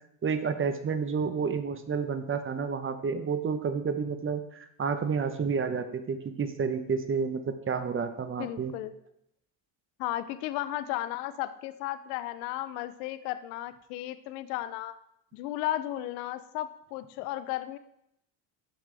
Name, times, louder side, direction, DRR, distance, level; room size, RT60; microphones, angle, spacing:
voice 1, 0.2-8.7, right 5 dB, 25° right, 9 dB, 1.0 m, -30 dB
voice 2, 8.4-8.9 10.0-14.9 15.3-17.8, left 14 dB, 90° left, 13 dB, 0.7 m, -34 dB
11.5 x 5.8 x 3.4 m, 0.77 s
supercardioid pair, 85°, 48 cm